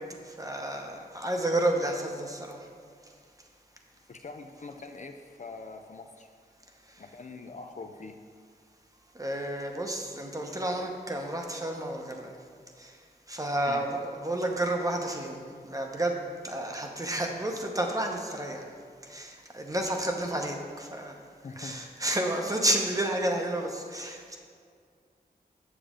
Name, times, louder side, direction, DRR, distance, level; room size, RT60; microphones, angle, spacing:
voice 1, 0.3-2.6 9.2-12.3 12.8-12.9 13.3-18.6 19.1-21.2 21.6-24.4, right 1 dB, 20° right, 2 dB, 0.9 m, -31 dB
voice 2, 4.1-6.3 7.0-8.2 13.7-13.9 21.4-21.8, left 3 dB, 45° left, 6 dB, 0.4 m, -43 dB
7.2 x 6.9 x 3.7 m, 2.1 s
wide cardioid pair, 70°, 17 cm